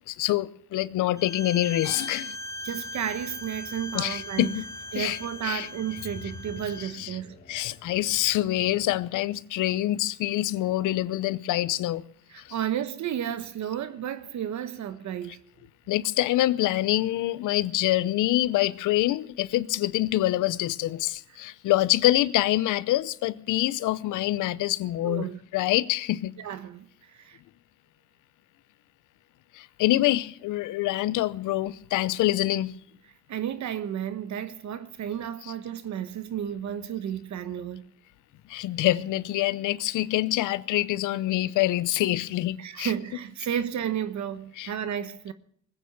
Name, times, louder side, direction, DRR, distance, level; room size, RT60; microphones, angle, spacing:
voice 1, 0.1-2.4 3.9-4.6 4.9-5.7 6.8-7.2 7.5-12.0 12.4-12.5 15.9-25.3 25.5-26.3 29.5-32.7 38.5-42.9 44.6-44.7, left 15 dB, 85° left, 0.7 m, -26 dB
Bowed string instrument, 1.2-6.9, left 1 dB, 10° left, 1.3 m, -40 dB
sound 1, 2.2-9.5, left 3 dB, 30° left, 4.2 m, -49 dB
voice 2, 2.6-4.6 4.9-7.4 12.3-15.4 25.0-25.4 26.4-27.4 33.3-37.9 42.6-45.3, right 9 dB, 70° right, 1.1 m, -32 dB
20.0 x 9.0 x 6.6 m
cardioid pair, 90°, 30 cm